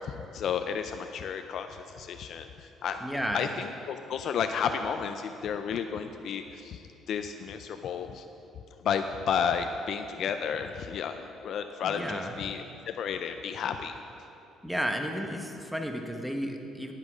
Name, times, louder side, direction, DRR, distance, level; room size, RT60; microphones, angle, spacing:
voice 1, 0.0-6.8 7.1-8.2 8.8-14.0, left 7 dB, 60° left, 7 dB, 0.4 m, -32 dB
voice 2, 3.0-3.5 11.8-12.4 14.6-16.9, equal, ahead, 3 dB, 1.0 m, -33 dB
10.5 x 8.5 x 5.0 m, 2.8 s
cardioid pair, 110°, 0 cm